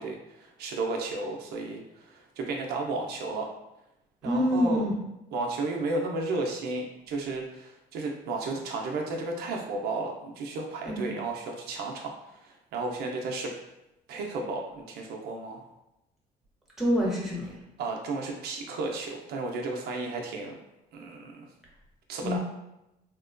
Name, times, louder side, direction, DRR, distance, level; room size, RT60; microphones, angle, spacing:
voice 1, 0.0-3.5 4.2-4.8 5.3-13.5 14.1-15.6 17.8-20.6 20.9-21.5 22.1-22.4, right 3 dB, 75° right, 1 dB, 0.5 m, -33 dB
voice 2, 4.2-4.9 10.9-11.0 16.8-17.5 22.2-22.4, equal, ahead, -4 dB, 0.9 m, -26 dB
2.9 x 2.1 x 2.4 m, 0.89 s
cardioid pair, 110°, 17 cm